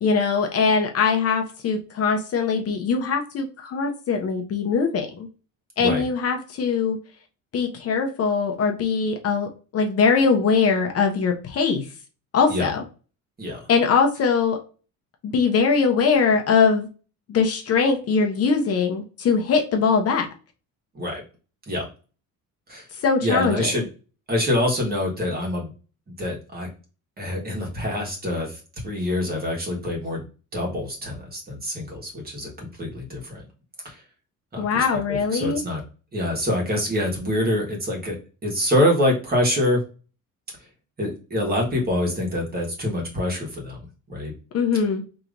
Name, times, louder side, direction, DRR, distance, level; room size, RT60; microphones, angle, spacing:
voice 1, 0.0-5.3 5.8-7.0 7.5-11.9 12.3-12.8 13.7-14.6 15.2-16.9 17.3-20.3 22.9-23.8 34.6-35.6 44.5-45.0, left 5 dB, 45° left, 3 dB, 0.7 m, -21 dB
voice 2, 23.2-23.8 24.3-25.7 26.2-26.7 27.2-30.2 30.5-33.5 33.8-34.0 34.5-35.8 36.1-38.2 38.4-39.8 41.0-44.3, left 1 dB, 25° right, 0 dB, 1.4 m, -25 dB
4.9 x 2.9 x 2.5 m, 0.34 s
cardioid pair, 155°, 34 cm